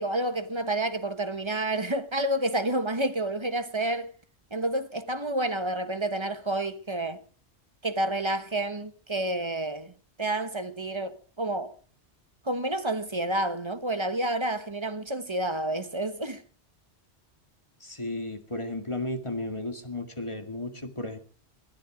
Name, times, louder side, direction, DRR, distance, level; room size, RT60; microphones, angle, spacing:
voice 1, 0.0-4.1 4.5-7.2 7.8-9.9 10.2-11.7 12.4-16.4, right 1 dB, 25° right, 1.2 m, -29 dB
voice 2, 17.8-21.2, left 2 dB, 25° left, 2.2 m, -34 dB
21.0 x 13.5 x 5.1 m
omnidirectional pair, 1.1 m